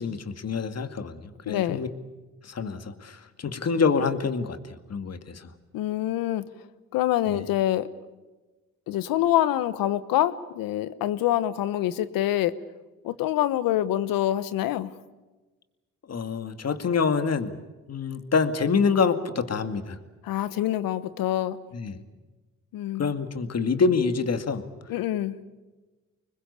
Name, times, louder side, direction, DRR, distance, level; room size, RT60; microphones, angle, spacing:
voice 1, 0.0-1.9 2.4-5.5 7.3-7.4 16.1-17.5 17.9-20.0 21.7-22.0 23.0-24.6, left 5 dB, 50° left, 9 dB, 2.2 m, -26 dB
voice 2, 1.5-1.8 5.7-6.4 6.9-7.9 8.9-12.5 13.0-14.9 20.2-21.6 22.7-23.1 24.9-25.3, left 13 dB, 80° left, 15 dB, 1.2 m, -25 dB
26.0 x 21.0 x 8.6 m, 1.2 s
supercardioid pair, 60°, 34 cm